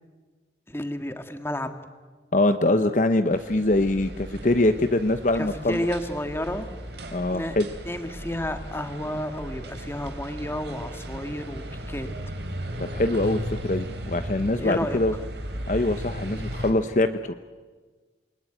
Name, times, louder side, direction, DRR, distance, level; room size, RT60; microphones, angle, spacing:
voice 1, 0.7-1.7 5.3-6.7 7.3-7.6 7.8-12.1 14.6-15.0, left 1 dB, 15° left, 7 dB, 1.7 m, -31 dB
voice 2, 2.3-5.9 7.1-7.7 12.8-15.1 15.7-17.3, left 2 dB, 45° left, 9 dB, 0.8 m, -23 dB
sound 1, 3.3-16.7, equal, 75° right, 3.7 m, -36 dB
27.5 x 20.5 x 9.2 m, 1.4 s
head